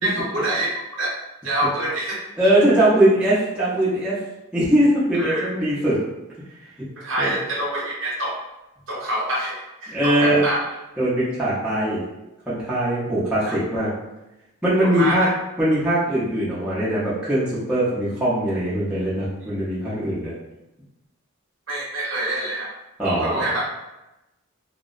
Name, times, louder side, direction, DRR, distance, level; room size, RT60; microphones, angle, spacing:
voice 1, 0.0-1.1 1.4-2.2 5.1-5.5 7.0-8.3 8.9-10.6 13.5-13.6 14.8-15.3 21.7-22.7 23.0-23.7, right 1 dB, 60° right, -5 dB, 0.8 m, -26 dB
voice 2, 2.4-4.2 4.5-6.0 7.2-7.3 9.9-10.4 11.0-12.0 12.5-13.9 14.6-15.3 15.6-20.3 23.0-23.4, right 1 dB, 5° right, -11 dB, 0.6 m, -21 dB
2.7 x 2.0 x 2.4 m, 0.96 s
head